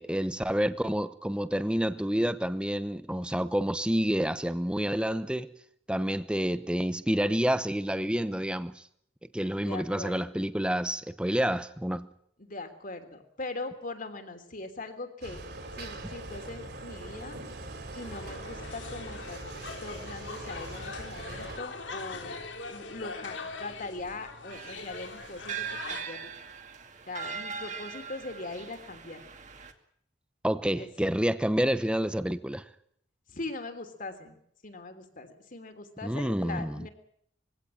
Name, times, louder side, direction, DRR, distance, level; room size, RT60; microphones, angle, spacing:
voice 1, 0.0-5.5 5.9-8.8 9.3-12.1 30.4-32.6 36.0-36.8, equal, 5° right, 0.9 m, -28 dB
voice 2, 9.6-10.2 12.4-15.4 15.7-17.4 17.9-19.4 19.8-22.4 22.7-26.3 27.1-29.2 30.8-30.9 33.3-36.9, left 2 dB, 45° left, 3.2 m, -41 dB
sound 1, 15.2-21.6, right 2 dB, 60° right, 4.4 m, -42 dB
sound 2, 18.0-26.0, left 3 dB, 75° left, 3.6 m, -42 dB
sound 3, 24.5-29.7, right 7 dB, 40° right, 2.3 m, -40 dB
22.5 x 17.0 x 8.9 m
head